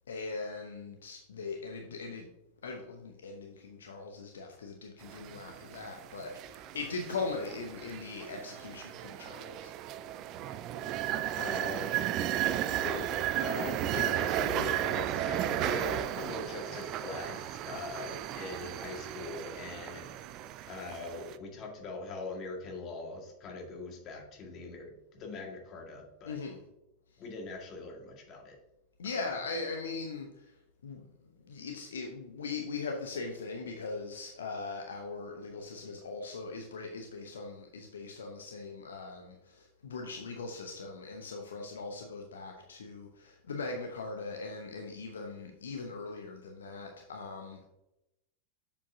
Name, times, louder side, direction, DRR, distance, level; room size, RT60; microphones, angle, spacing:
voice 1, 0.1-2.3 2.6-9.7 26.3-26.6 29.0-30.5 30.8-31.0 31.4-47.6, left 4 dB, 65° left, 3 dB, 0.8 m, -40 dB
sound 1, 5.0-21.3, right 12 dB, 40° right, 0.4 m, -35 dB
voice 2, 11.3-11.9 12.8-13.1 13.4-20.3 20.7-26.4 27.2-28.6 29.0-29.2, left 3 dB, 35° left, 1 dB, 1.9 m, -41 dB
7.2 x 7.0 x 2.7 m, 0.88 s
figure-of-eight pair, 90°, 0 cm